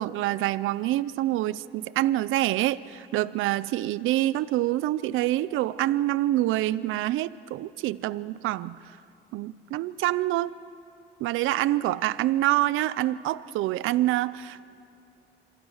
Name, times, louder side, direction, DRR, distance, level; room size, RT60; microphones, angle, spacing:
voice 1, 0.0-9.0 9.3-10.5 11.2-14.7, right 15 dB, 90° right, 18 dB, 0.5 m, -26 dB
26.5 x 23.5 x 6.4 m, 2.5 s
cardioid pair, 90°, 20 cm